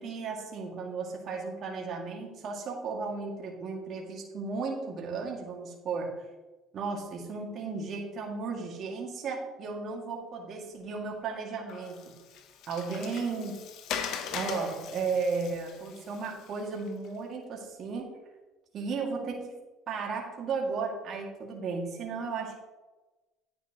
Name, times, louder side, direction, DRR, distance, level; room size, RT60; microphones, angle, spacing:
voice 1, 0.0-6.2 6.7-12.1 12.7-13.6 14.3-18.1 18.7-19.6 19.9-22.6, right 4 dB, 50° right, 0 dB, 2.3 m, -35 dB
Water, 11.7-17.1, left 7 dB, 70° left, 0.9 m, -40 dB
10.0 x 9.2 x 3.1 m, 1.2 s
supercardioid pair, 95°, 0 cm